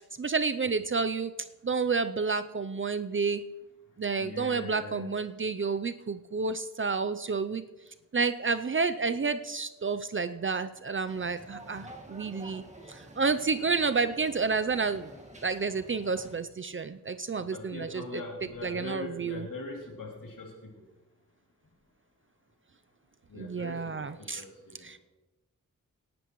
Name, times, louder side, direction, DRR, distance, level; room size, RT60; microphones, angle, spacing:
voice 1, 0.2-1.3 1.6-3.4 4.0-7.6 8.1-12.6 12.9-15.1 15.4-18.2 18.6-19.5 23.4-24.4 24.8-25.0, right 4 dB, 40° right, 11 dB, 0.5 m, -30 dB
voice 2, 4.2-5.1 11.8-11.9 17.4-20.8 23.3-25.0, left 2 dB, 80° left, -1 dB, 2.7 m, -42 dB
sound 1, 11.1-16.4, right 1 dB, 20° right, 1.8 m, -49 dB
18.0 x 11.5 x 3.1 m, 1.1 s
cardioid pair, 65°, 32 cm